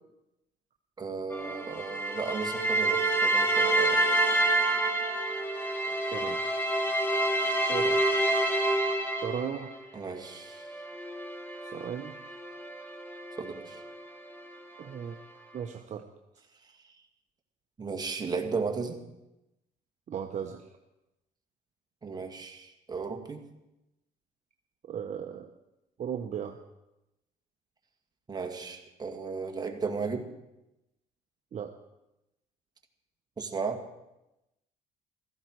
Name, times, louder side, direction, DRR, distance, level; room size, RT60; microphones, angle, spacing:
voice 1, 1.0-4.0 9.9-10.8 13.4-13.8 17.8-19.0 22.0-23.4 28.3-30.3 33.4-33.9, right 4 dB, 25° right, 4 dB, 2.0 m, -35 dB
sound 1, 1.3-9.8 10.6-13.9, right 1 dB, 10° left, 2.5 m, -28 dB
voice 2, 5.9-6.4 7.5-8.0 9.2-9.7 11.7-12.2 14.8-15.1 15.5-16.0 20.1-20.6 24.9-25.5 26.0-26.6 31.5-31.7, right 8 dB, 45° right, 5 dB, 0.9 m, -36 dB
16.5 x 14.0 x 4.7 m, 0.94 s
cardioid pair, 110°, 17 cm